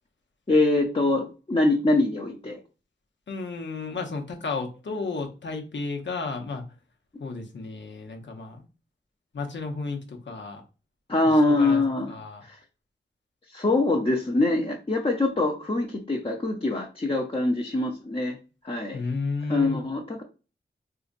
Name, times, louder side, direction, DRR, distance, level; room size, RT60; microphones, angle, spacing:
voice 1, 0.5-2.6 11.1-12.1 12.4-12.6 13.5-18.4 18.6-19.0 19.5-20.2, left 2 dB, 30° left, -2 dB, 0.7 m, -24 dB
voice 2, 3.3-6.6 7.2-8.7 9.3-10.6 11.3-11.8 12.1-12.4 18.9-19.8, left 3 dB, 75° left, 2 dB, 0.8 m, -33 dB
3.8 x 2.8 x 2.5 m, 0.32 s
wide cardioid pair, 60°, 19 cm